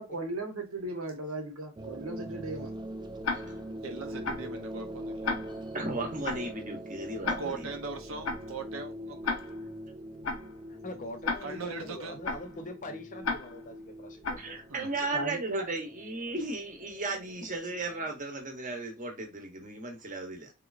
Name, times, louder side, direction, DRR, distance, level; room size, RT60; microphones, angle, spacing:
voice 1, 0.0-2.7 15.1-15.7, right 2 dB, 90° right, 1.2 m, -37 dB
sound 1, 1.8-18.2, equal, 20° right, 0.4 m, -43 dB
Tick-tock, 3.2-3.7 4.2-4.6 5.2-5.7 6.2-6.6 7.2-7.7 8.2-8.6 9.2-9.7 10.2-10.6 11.2-11.7 12.2-12.6 13.2-13.7 14.2-14.6, left 4 dB, 85° left, 0.6 m, -34 dB
voice 2, 3.8-5.3 7.4-9.4 11.4-12.2 14.7-14.9, right 4 dB, 70° right, 0.7 m, -40 dB
voice 3, 5.7-7.7 14.4-20.5, right 2 dB, 40° right, 1.0 m, -35 dB
voice 4, 10.8-14.6 15.0-15.1, left 1 dB, 40° left, 0.7 m, -43 dB
3.2 x 3.0 x 2.5 m
head